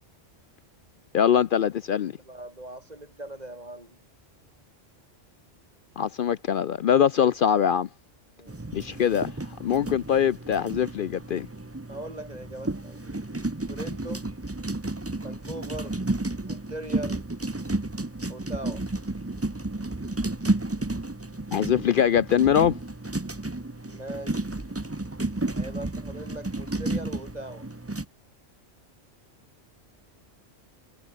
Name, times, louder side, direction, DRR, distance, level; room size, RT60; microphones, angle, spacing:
voice 1, 1.1-2.1 6.0-7.9 8.7-9.3 9.6-11.5 21.5-22.8, left 8 dB, 60° left, 0.6 m, -23 dB
voice 2, 2.0-4.0 8.4-8.6 11.9-13.0 13.7-14.3 15.2-16.0 16.5-17.3 18.3-18.9 23.9-24.5 25.5-27.7, right 1 dB, 35° right, 5.3 m, -40 dB
sound 1, 8.5-28.0, right 2 dB, 15° right, 0.9 m, -32 dB
omnidirectional pair, 1.2 m